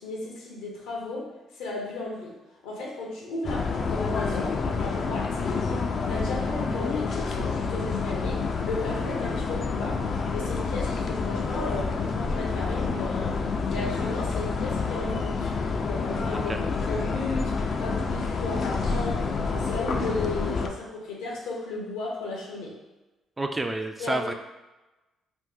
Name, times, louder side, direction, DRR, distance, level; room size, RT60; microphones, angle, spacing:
voice 1, 0.0-2.4 2.6-10.0 10.3-13.4 13.7-15.5 15.8-16.5 16.9-22.8 24.0-24.3, left 2 dB, 90° left, -3 dB, 0.9 m, -35 dB
sound 1, 3.4-20.7, left 4 dB, 55° left, 0.4 m, -28 dB
voice 2, 23.4-24.3, right 2 dB, 20° right, 5 dB, 0.3 m, -29 dB
3.0 x 2.1 x 3.7 m, 1.1 s
supercardioid pair, 70°, 0 cm